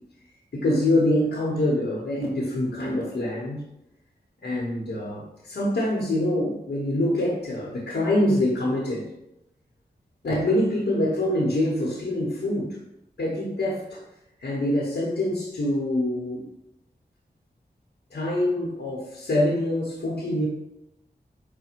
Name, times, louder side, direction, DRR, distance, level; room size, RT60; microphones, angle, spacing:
voice 1, 0.5-3.6 4.4-9.1 10.2-12.8 13.2-14.0 14.4-16.4 18.1-20.5, left 1 dB, 75° left, -4 dB, 1.0 m, -25 dB
5.0 x 2.2 x 4.4 m, 0.86 s
cardioid pair, 45°, 17 cm